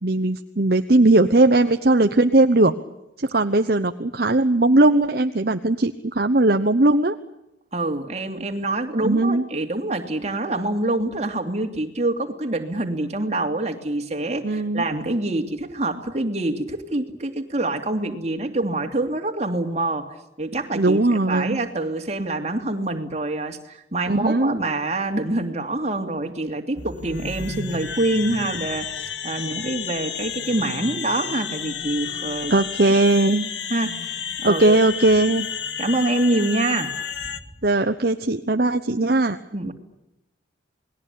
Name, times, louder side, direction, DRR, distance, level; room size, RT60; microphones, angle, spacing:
voice 1, 0.0-2.7 3.2-7.1 9.0-9.4 14.4-14.9 20.7-21.6 24.1-24.5 32.5-33.5 34.4-35.5 37.6-39.4, right 2 dB, 50° right, 7 dB, 1.1 m, -19 dB
voice 2, 7.7-20.1 20.4-28.9 29.2-32.5 33.7-34.8 35.8-36.9 39.5-39.7, right 2 dB, 35° right, 5 dB, 2.9 m, -26 dB
sound 1, 26.8-37.4, left 7 dB, 65° left, 1.8 m, -31 dB
29.0 x 20.5 x 8.5 m, 0.85 s
head